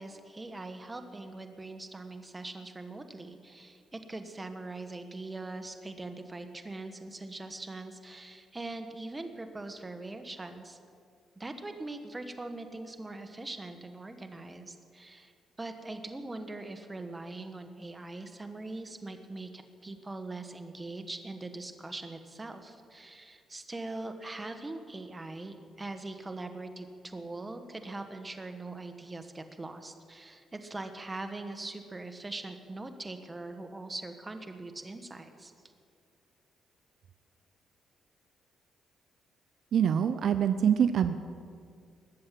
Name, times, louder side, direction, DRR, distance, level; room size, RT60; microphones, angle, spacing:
voice 1, 0.0-10.8 11.4-15.3 15.6-35.5, right 2 dB, 20° right, 7 dB, 1.4 m, -42 dB
voice 2, 39.7-41.1, right 8 dB, 65° right, 10 dB, 0.6 m, -25 dB
20.5 x 7.8 x 7.6 m, 2.3 s
cardioid pair, 90°, 0 cm